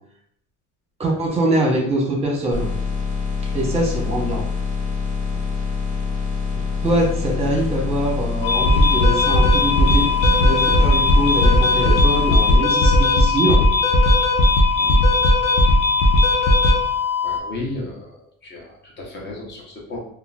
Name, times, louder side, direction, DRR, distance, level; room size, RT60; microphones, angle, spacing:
voice 1, 1.0-2.7 3.5-4.4 6.8-10.0 10.4-13.6 14.8-15.0, right 1 dB, 20° right, -2 dB, 0.8 m, -23 dB
sound 1, 2.5-12.6, left 5 dB, 15° left, 0.9 m, -25 dB
sound 2, 8.4-17.4, left 2 dB, 80° left, 0.6 m, -16 dB
voice 2, 17.2-20.0, left 2 dB, 35° left, -2 dB, 0.8 m, -33 dB
3.7 x 2.3 x 2.3 m, 0.68 s
cardioid pair, 155°, 30 cm